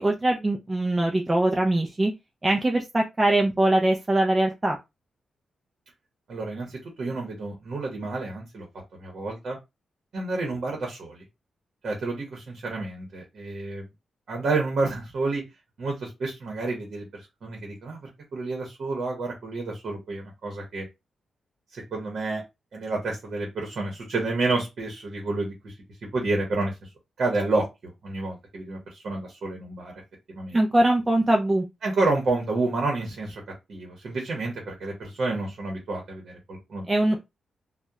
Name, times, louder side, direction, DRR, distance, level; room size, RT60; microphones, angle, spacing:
voice 1, 0.0-2.1 2.4-4.8 30.5-31.6 36.9-37.2, right 1 dB, 15° right, 1 dB, 0.3 m, -22 dB
voice 2, 6.3-8.7 8.9-9.6 10.1-11.2 11.8-13.8 14.3-15.4 15.8-20.9 21.7-22.4 22.7-25.8 26.1-26.9 27.2-27.7 28.0-29.9 30.3-30.6 31.8-33.4 33.7-36.9, right 3 dB, 55° right, 0 dB, 0.8 m, -29 dB
2.8 x 2.1 x 2.3 m, 0.22 s
wide cardioid pair, 155°, 0 cm